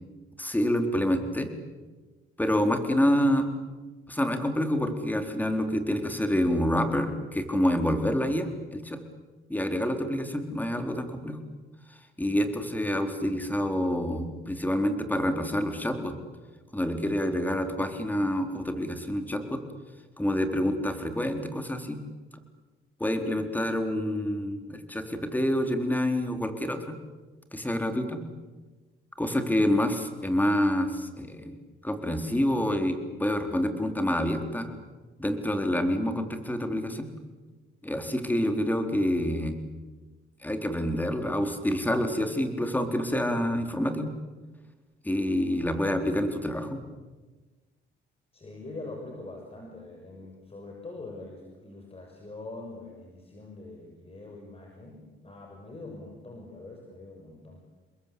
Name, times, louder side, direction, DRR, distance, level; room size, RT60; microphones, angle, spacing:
voice 1, 0.4-1.5 2.4-3.5 4.1-9.0 9.5-11.4 12.2-16.1 16.7-19.6 20.2-22.0 23.0-27.0 27.5-28.2 29.2-31.6 31.8-34.7 35.2-37.1 37.8-39.6 40.4-44.1 45.0-46.8, equal, 10° left, 6 dB, 4.1 m, -27 dB
voice 2, 48.3-57.6, left 2 dB, 30° left, 1 dB, 6.5 m, -43 dB
29.5 x 21.5 x 8.6 m, 1.3 s
cardioid pair, 90°, 20 cm